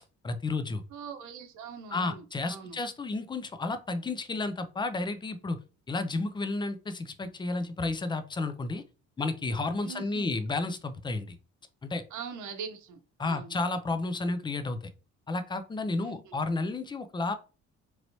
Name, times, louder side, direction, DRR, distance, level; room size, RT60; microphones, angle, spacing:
voice 1, 0.2-0.8 1.9-5.6 5.9-8.8 9.2-11.4 11.8-12.0 13.2-14.8 15.3-17.3, left 3 dB, 15° left, 10 dB, 0.3 m, -32 dB
voice 2, 0.9-2.8 9.8-10.3 12.1-13.0 13.2-13.6 16.0-16.3, right 6 dB, 75° right, 7 dB, 0.7 m, -42 dB
3.1 x 2.9 x 2.6 m, 0.33 s
cardioid pair, 115°, 30 cm